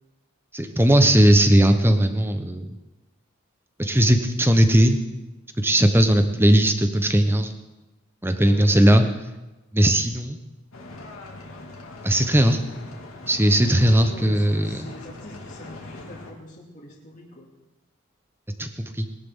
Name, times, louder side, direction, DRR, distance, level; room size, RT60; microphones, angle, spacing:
voice 1, 0.5-2.7 3.8-5.0 5.6-7.5 8.2-9.0 9.7-10.4 12.0-12.6 13.3-14.9 18.6-18.7 18.9-19.1, right 1 dB, 10° right, 7 dB, 1.0 m, -18 dB
voice 2, 8.4-8.9 13.8-17.5, left 1 dB, 35° left, -6 dB, 2.5 m, -43 dB
sound 1, 10.7-16.3, left 2 dB, 85° left, 2.2 m, -41 dB
20.5 x 11.5 x 3.7 m, 1.1 s
head